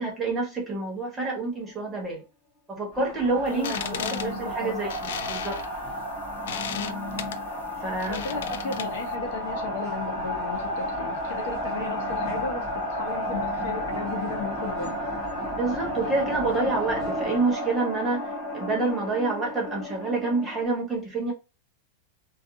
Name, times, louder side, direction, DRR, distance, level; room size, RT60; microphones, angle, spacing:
voice 1, 0.0-2.2 2.7-5.6 7.8-8.2 15.5-21.3, right 3 dB, 10° right, 0.6 m, -28 dB
sound 1, 2.9-20.6, equal, 5° left, 1.2 m, -32 dB
sound 2, 3.5-9.1, left 9 dB, 70° left, 0.3 m, -36 dB
voice 2, 3.5-4.8 6.7-7.0 8.1-14.9, left 4 dB, 55° left, 0.7 m, -35 dB
2.4 x 2.3 x 2.7 m
supercardioid pair, 180°, 0 cm